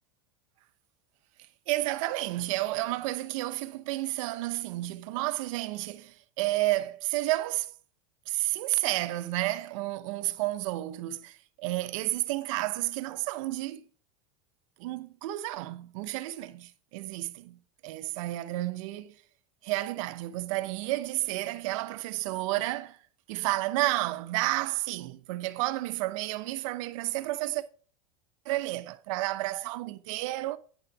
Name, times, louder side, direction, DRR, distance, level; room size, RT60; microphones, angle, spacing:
voice 1, 1.7-7.7 8.3-13.8 14.8-19.1 19.6-23.0 23.3-27.6 28.4-30.6, right 18 dB, 65° right, 0.9 m, -31 dB
10.5 x 5.8 x 4.7 m
hypercardioid pair, 100°, 18 cm